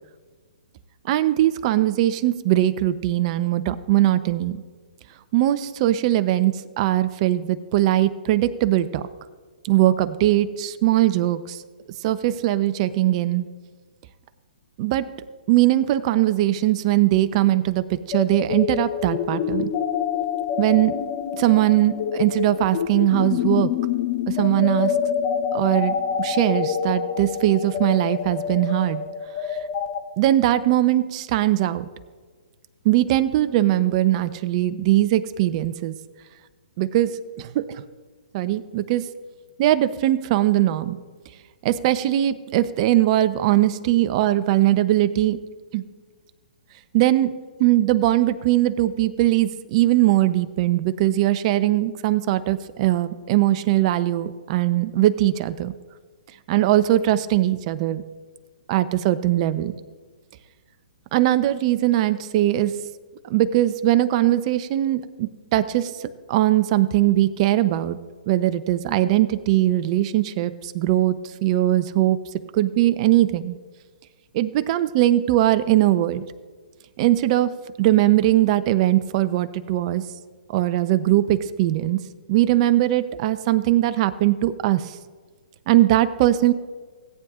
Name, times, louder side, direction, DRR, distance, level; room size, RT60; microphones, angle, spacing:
voice 1, 1.0-4.6 5.3-9.0 9.6-11.6 12.0-13.5 14.8-15.1 15.5-19.7 20.6-20.9 21.4-23.7 24.3-24.9 25.5-29.0 29.5-29.6 30.2-31.9 32.8-35.9 36.8-37.8 38.3-39.0 39.6-41.0 41.6-45.4 45.7-45.8 46.9-47.3 47.6-55.7 56.5-58.0 58.7-59.8 61.1-62.7 63.2-65.9 66.3-68.0 68.3-71.1 71.4-72.2 72.5-73.6 74.3-76.2 77.0-77.5 77.8-80.0 80.5-82.0 82.3-84.8 85.7-86.5, right 14 dB, 40° right, 12 dB, 0.7 m, -20 dB
sound 1, 18.1-30.0, left 8 dB, 35° left, 0.8 m, -26 dB
17.5 x 9.4 x 2.5 m, 1.5 s
hypercardioid pair, 135°, 5 cm